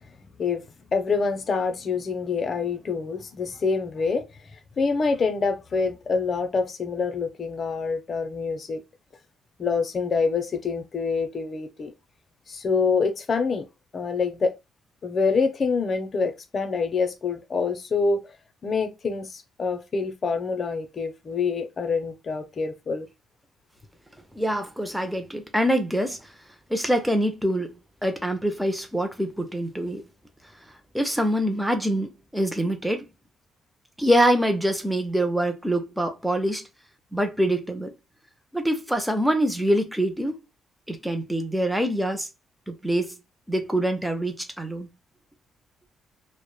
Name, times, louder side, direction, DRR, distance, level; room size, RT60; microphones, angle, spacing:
voice 1, 0.2-0.7 0.9-4.2 4.8-8.8 9.6-11.9 12.5-13.7 13.9-14.5 15.0-18.2 18.6-23.1, left 4 dB, 45° left, 0.5 m, -26 dB
voice 2, 24.3-26.3 26.7-27.7 28.0-30.0 30.9-33.0 34.0-36.7 37.1-37.9 38.5-40.4 40.9-42.3 42.7-43.1 43.5-44.9, equal, 5° right, 0.5 m, -25 dB
2.1 x 2.0 x 3.0 m
cardioid pair, 90°, 0 cm